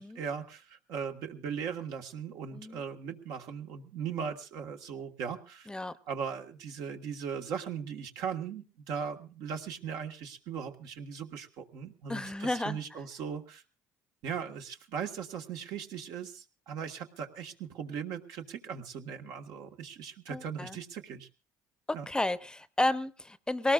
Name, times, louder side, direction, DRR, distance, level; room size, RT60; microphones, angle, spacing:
voice 1, 0.0-5.7 6.1-13.6 14.2-21.3 21.9-22.0, right 7 dB, 75° right, 4 dB, 1.6 m, -38 dB
voice 2, 12.1-12.8 20.3-20.8 21.9-23.7, left 1 dB, 10° left, 14 dB, 0.7 m, -31 dB
22.5 x 18.5 x 2.5 m, 0.33 s
supercardioid pair, 90°, 7 cm